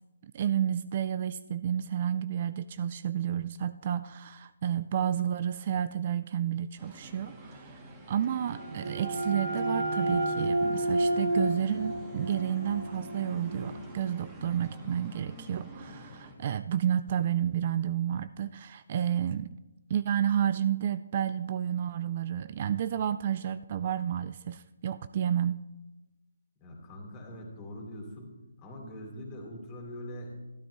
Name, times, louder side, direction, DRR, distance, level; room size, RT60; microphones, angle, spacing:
voice 1, 0.3-7.8 8.1-19.5 19.9-25.6, right 9 dB, 40° right, 13 dB, 0.4 m, -31 dB
sound 1, 6.8-16.3, right 1 dB, 20° right, 2.0 m, -46 dB
sound 2, 8.3-13.8, right 1 dB, 55° right, 1.8 m, -31 dB
voice 2, 26.6-28.3 28.6-30.5, equal, 25° left, 0 dB, 3.2 m, -42 dB
12.5 x 12.5 x 3.4 m, 1.0 s
figure-of-eight pair, 145°, 0 cm